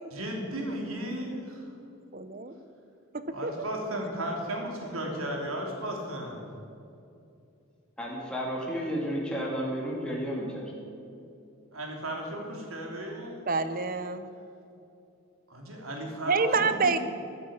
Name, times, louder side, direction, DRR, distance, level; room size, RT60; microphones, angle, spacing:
voice 1, 0.1-1.7 3.3-6.4 11.7-13.4 15.5-17.0, right 1 dB, 85° right, 1 dB, 3.1 m, -35 dB
voice 2, 2.1-2.5 3.1-3.5 13.5-14.3 16.3-17.0, right 4 dB, 40° right, 11 dB, 0.8 m, -27 dB
voice 3, 8.0-10.7, equal, 5° left, -3 dB, 2.4 m, -32 dB
14.0 x 9.1 x 8.7 m, 2.6 s
head